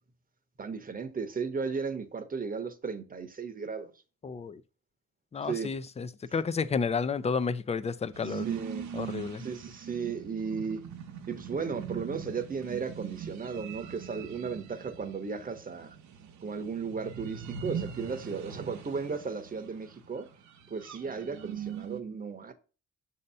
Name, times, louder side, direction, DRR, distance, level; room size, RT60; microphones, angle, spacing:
voice 1, 0.6-3.9 5.4-5.7 8.2-8.9 9.4-10.8 11.3-16.0 16.4-20.3 20.7-22.5, right 5 dB, 30° right, 0.9 m, -35 dB
voice 2, 4.2-4.6 5.3-8.5 8.9-9.4, left 5 dB, 20° left, 0.4 m, -31 dB
sound 1, 8.1-22.0, right 8 dB, 70° right, 0.9 m, -41 dB
6.5 x 2.8 x 5.4 m
cardioid pair, 90°, 30 cm